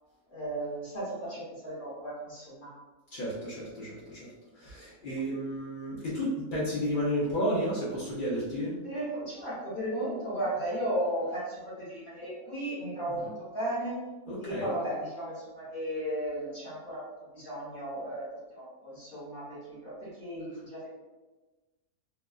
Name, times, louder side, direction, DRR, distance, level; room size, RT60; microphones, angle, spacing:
voice 1, 0.3-2.7 8.8-14.1 14.4-20.9, right 1 dB, 35° left, -9 dB, 1.4 m, -35 dB
voice 2, 3.1-4.3 4.5-8.7 13.2-13.3 14.3-14.7, equal, 55° left, -7 dB, 0.5 m, -32 dB
2.8 x 2.2 x 2.3 m, 1.2 s
omnidirectional pair, 1.6 m